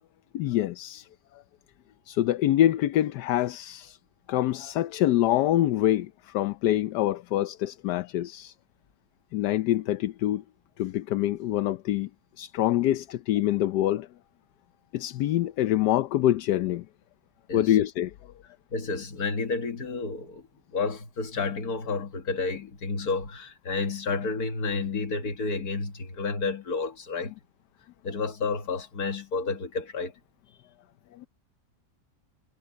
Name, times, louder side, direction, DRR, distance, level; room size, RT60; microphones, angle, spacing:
voice 1, 0.3-1.1 2.1-4.0 4.3-8.5 9.3-10.4 10.8-12.1 12.4-14.1 14.9-16.8 17.5-18.1 31.2-31.3, left 13 dB, 80° left, 1.3 m, -25 dB
voice 2, 18.7-20.5 20.7-27.3 28.0-30.1, left 4 dB, 65° left, 2.2 m, -30 dB
omnidirectional pair, 1.7 m